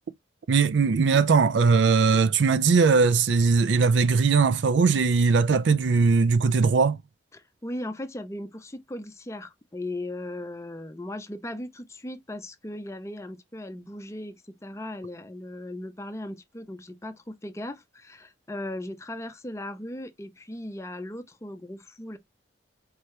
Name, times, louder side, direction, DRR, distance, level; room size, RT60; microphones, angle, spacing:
voice 1, 0.5-7.0, right 4 dB, 70° right, 0.4 m, -20 dB
voice 2, 7.3-14.3 14.6-22.2, left 1 dB, 15° left, 0.5 m, -37 dB
4.7 x 2.7 x 3.2 m
head